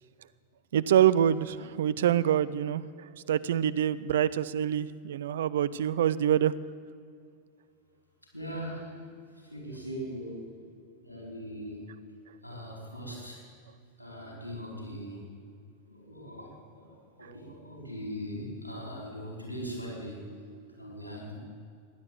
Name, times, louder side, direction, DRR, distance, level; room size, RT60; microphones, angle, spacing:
voice 1, 0.7-2.8 3.3-6.5, right 10 dB, 60° right, 16 dB, 0.5 m, -25 dB
voice 2, 8.3-9.0 9.5-10.4 11.0-11.9 12.4-13.4 14.0-15.2 15.9-16.9 17.2-20.3 20.8-21.3, equal, 85° left, -2 dB, 4.6 m, -40 dB
16.0 x 10.5 x 8.0 m, 2.3 s
figure-of-eight pair, 90°, 0 cm